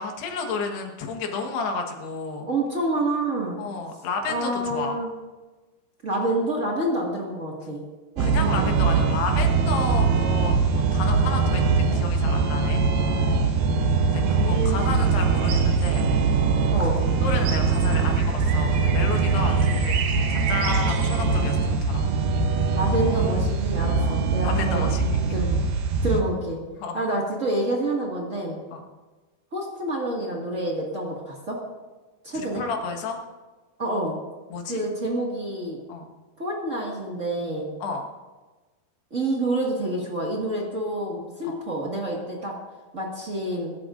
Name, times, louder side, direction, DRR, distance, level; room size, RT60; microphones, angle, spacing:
voice 1, 0.0-2.5 3.6-5.0 8.2-12.8 14.0-16.1 16.8-16.9 17.1-22.1 24.0-25.4 26.8-27.0 28.7-28.8 32.3-33.2 34.5-34.8 35.9-36.1 37.8-38.1 41.4-41.6, left 4 dB, 85° left, 3 dB, 3.6 m, -32 dB
voice 2, 2.4-3.6 4.2-5.1 6.0-7.8 8.1-8.7 14.2-15.0 16.7-17.0 22.7-24.9 25.3-25.6 26.0-26.6 26.9-28.6 29.5-31.6 32.2-32.6 33.8-34.2 34.7-35.8 36.4-37.7 39.1-42.5 42.9-43.7, right 1 dB, 35° right, -3 dB, 1.2 m, -28 dB
sound 1, 8.2-26.2, right 4 dB, 75° right, 2.8 m, -22 dB
sound 2, 14.2-21.8, right 5 dB, 60° right, 1.9 m, -34 dB
23.5 x 12.5 x 2.6 m, 1.2 s
omnidirectional pair, 4.5 m